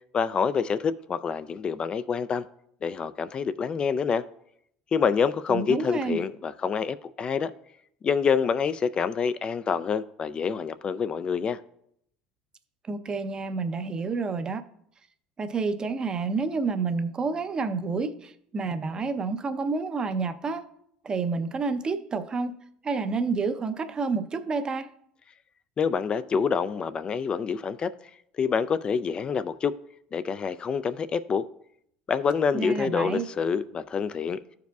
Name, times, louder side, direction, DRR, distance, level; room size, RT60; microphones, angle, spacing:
voice 1, 0.1-2.4 2.8-4.2 4.9-7.5 8.0-11.6 25.8-27.9 28.4-29.7 30.1-31.5 32.1-34.4, left 6 dB, 35° left, 0.3 m, -27 dB
voice 2, 5.5-6.2 12.9-14.6 15.4-20.7 21.0-22.6 22.8-24.9 32.5-33.3, right 4 dB, 30° right, 0.6 m, -29 dB
13.5 x 4.7 x 2.3 m
supercardioid pair, 100°, 3 cm